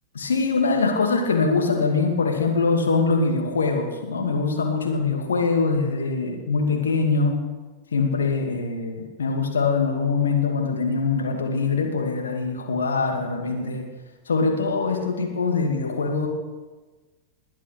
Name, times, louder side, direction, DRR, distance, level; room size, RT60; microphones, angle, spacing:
voice 1, 0.1-7.4 7.9-13.9 14.3-16.3, left 4 dB, 70° left, 3 dB, 2.4 m, -23 dB
20.5 x 8.9 x 6.5 m, 1.3 s
figure-of-eight pair, 90°, 0 cm